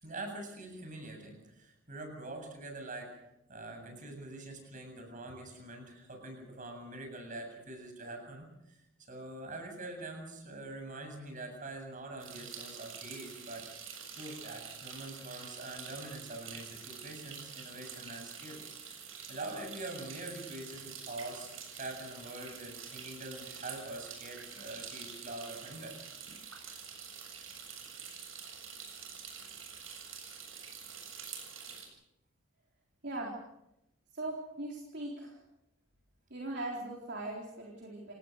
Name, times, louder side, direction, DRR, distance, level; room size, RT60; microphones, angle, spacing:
voice 1, 0.0-3.1 3.5-8.8 9.1-13.6 14.1-19.0 19.3-26.0, right 2 dB, 40° right, 4 dB, 7.7 m, -44 dB
sound 1, 12.2-31.9, right 7 dB, 85° right, 7.4 m, -47 dB
voice 2, 33.0-33.4 34.1-35.4 36.3-38.1, right 2 dB, 55° right, -2 dB, 4.0 m, -40 dB
28.5 x 18.5 x 6.6 m, 0.85 s
head